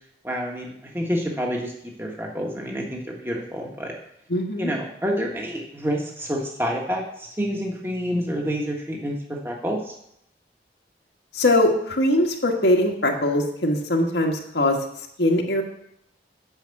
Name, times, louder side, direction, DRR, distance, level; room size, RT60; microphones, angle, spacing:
voice 1, 0.2-1.7 2.0-3.9 4.6-9.9, equal, 15° right, 0 dB, 1.5 m, -28 dB
voice 2, 4.3-4.7 11.3-14.8 15.2-15.6, left 1 dB, 80° left, 1 dB, 1.5 m, -21 dB
9.0 x 5.9 x 7.0 m, 0.75 s
head